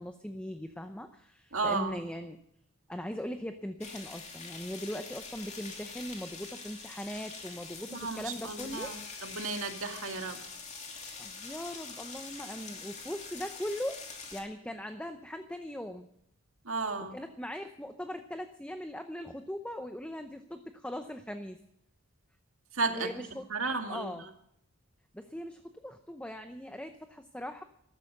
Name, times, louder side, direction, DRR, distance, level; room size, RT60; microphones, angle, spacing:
voice 1, 0.0-2.4 2.9-8.9 11.2-14.0 14.3-16.1 17.1-21.6 22.9-23.5 23.9-24.3 25.1-27.6, equal, 5° left, 7 dB, 0.7 m, -40 dB
voice 2, 1.5-2.0 7.9-10.4 16.7-17.1 22.7-23.1 23.5-24.1, right 4 dB, 70° right, 5 dB, 2.1 m, -33 dB
sound 1, 3.8-14.4, left 4 dB, 30° left, 2.7 m, -45 dB
14.0 x 13.0 x 6.6 m, 0.73 s
head